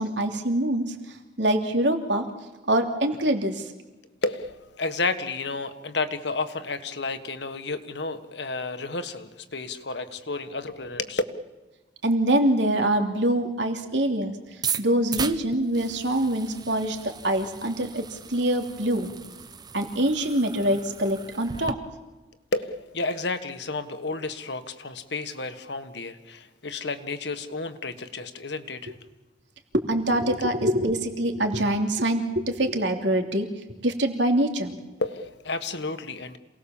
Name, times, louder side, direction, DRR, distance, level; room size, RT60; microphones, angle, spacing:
voice 1, 0.0-2.3 2.6-3.7 12.0-14.4 14.8-19.1 19.7-21.8 29.7-33.5 33.8-34.8, right 1 dB, 75° right, 5 dB, 3.0 m, -24 dB
voice 2, 4.2-11.2 22.5-28.9 35.0-36.4, left 3 dB, 70° left, 10 dB, 1.6 m, -31 dB
sound 1, 14.5-21.7, right 6 dB, 20° right, 0.8 m, -37 dB
27.5 x 19.0 x 7.3 m, 1.2 s
head